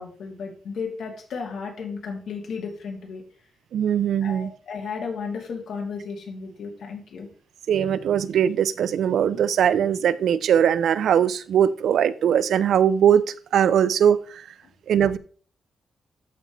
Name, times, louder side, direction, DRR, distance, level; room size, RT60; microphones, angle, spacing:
voice 1, 0.0-3.2 4.2-7.3, left 5 dB, 80° left, 2.4 m, -34 dB
voice 2, 3.7-4.5 7.7-13.2 13.5-14.4 14.9-15.2, right 9 dB, 80° right, 0.5 m, -20 dB
13.0 x 5.3 x 3.1 m
wide cardioid pair, 165°, 0 cm